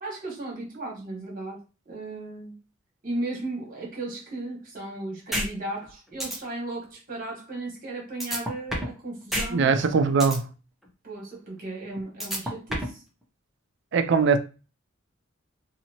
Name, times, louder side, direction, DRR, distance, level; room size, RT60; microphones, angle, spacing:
voice 1, 0.0-2.5 3.0-9.7 11.0-13.0, right 2 dB, 45° right, 1.4 m, -35 dB
sound 1, 5.3-5.5 5.8-5.9 6.2-6.4 8.2-9.0 9.3-9.5 9.8-10.4 12.2-13.0, equal, ahead, 0.7 m, -28 dB
voice 2, 9.5-10.5 13.9-14.4, right 5 dB, 60° right, 0.4 m, -21 dB
2.8 x 2.7 x 2.8 m
head